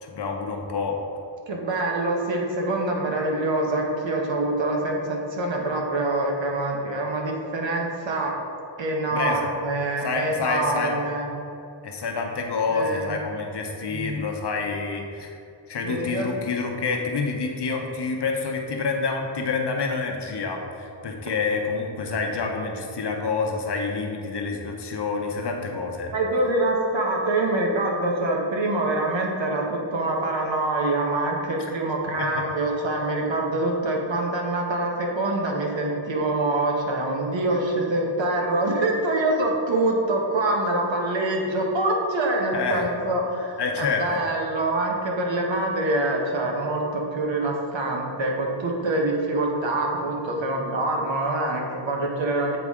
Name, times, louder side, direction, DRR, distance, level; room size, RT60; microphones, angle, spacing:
voice 1, 0.0-1.0 9.1-9.4 10.0-11.0 11.8-15.3 15.7-26.1 31.6-31.7 32.2-32.4 42.5-42.8 43.6-44.3, left 4 dB, 60° left, 2 dB, 0.8 m, -28 dB
voice 2, 1.5-8.3 8.8-11.3 12.7-13.2 13.9-14.2 15.8-16.3 26.1-52.6, right 2 dB, 70° right, 0 dB, 1.0 m, -25 dB
8.0 x 4.0 x 3.6 m, 2.6 s
wide cardioid pair, 175°, 47 cm